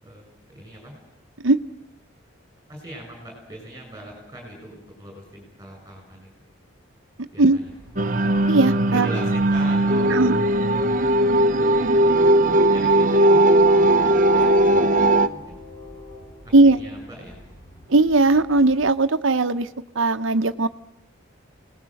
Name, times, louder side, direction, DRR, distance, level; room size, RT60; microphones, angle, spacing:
voice 1, 0.5-0.9 2.7-6.3 7.3-7.7 8.9-10.5 11.5-11.8 12.7-15.6 16.4-17.4, right 1 dB, 15° right, 1 dB, 7.5 m, -40 dB
Train, 7.6-18.9, left 2 dB, 20° left, 5.4 m, -44 dB
sound 1, 8.0-15.3, right 1 dB, 40° right, 0.9 m, -18 dB
voice 2, 8.5-9.1 10.1-10.4 16.5-16.8 17.9-19.7 19.9-20.7, right 2 dB, 70° right, 8 dB, 0.9 m, -18 dB
29.0 x 19.5 x 7.7 m, 0.81 s
head